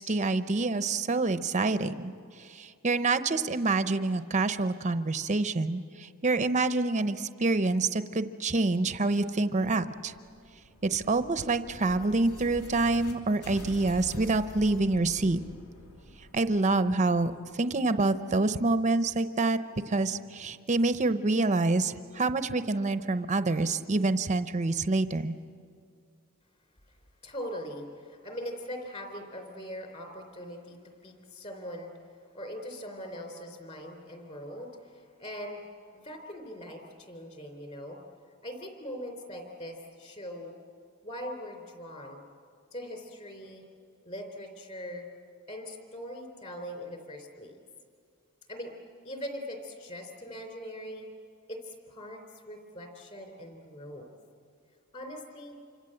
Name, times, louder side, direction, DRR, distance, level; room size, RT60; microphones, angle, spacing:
voice 1, 0.0-2.1 2.4-10.1 10.8-15.4 16.3-17.3 17.6-19.6 19.9-25.3, right 3 dB, 30° right, 11 dB, 0.7 m, -27 dB
sound 1, 10.0-13.1 13.4-18.1, equal, 85° left, 3.3 m, -47 dB
voice 2, 27.2-31.9 32.3-35.7 35.9-38.0 38.4-40.6 41.0-42.2 42.7-43.6 44.1-45.1 45.5-47.6 48.5-48.7 49.0-51.1 51.5-54.1 54.9-55.6, equal, 30° left, 4 dB, 3.7 m, -41 dB
27.5 x 25.5 x 7.8 m, 2.2 s
head